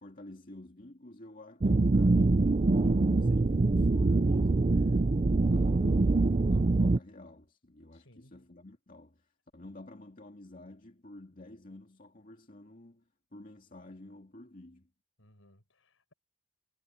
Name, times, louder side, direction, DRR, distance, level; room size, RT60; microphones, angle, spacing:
voice 1, 0.0-14.9, left 1 dB, 40° left, 2.3 m, -51 dB
sound 1, 1.6-7.0, right 3 dB, 30° right, 0.4 m, -24 dB
voice 2, 7.9-8.5 15.2-16.1, left 1 dB, 60° left, 7.7 m, -62 dB
head